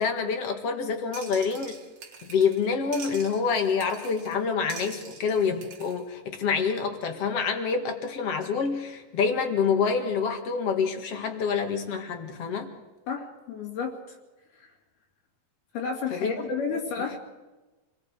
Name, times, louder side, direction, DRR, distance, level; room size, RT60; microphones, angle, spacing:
voice 1, 0.0-1.8 2.3-12.7 16.1-16.3, left 5 dB, 50° left, 5 dB, 2.0 m, -27 dB
sound 1, 1.1-2.7 2.9-4.4 4.7-6.0, right 6 dB, 45° right, 3.0 m, -44 dB
voice 2, 13.1-14.2 14.6-14.7 15.7-17.2, left 5 dB, 65° left, 0 dB, 4.1 m, -32 dB
28.5 x 21.0 x 4.8 m, 1.1 s
omnidirectional pair, 5.0 m